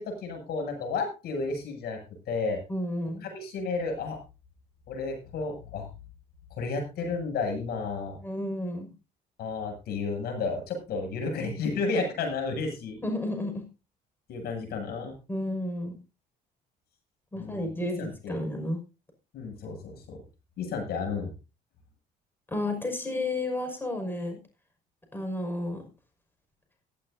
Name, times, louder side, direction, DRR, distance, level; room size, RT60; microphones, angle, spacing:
voice 1, 0.0-2.0 2.3-2.6 3.2-4.2 4.9-5.9 6.5-8.2 9.4-13.0 14.3-15.1 17.3-18.4 19.3-20.2 20.6-21.3, left 4 dB, 70° left, 3 dB, 7.8 m, -32 dB
voice 2, 2.7-3.3 8.2-8.9 13.0-13.6 15.3-16.0 17.3-18.8 22.5-24.4 25.1-25.8, left 1 dB, 10° left, 4 dB, 5.8 m, -31 dB
16.0 x 15.0 x 2.8 m, 0.30 s
cardioid pair, 110°, 17 cm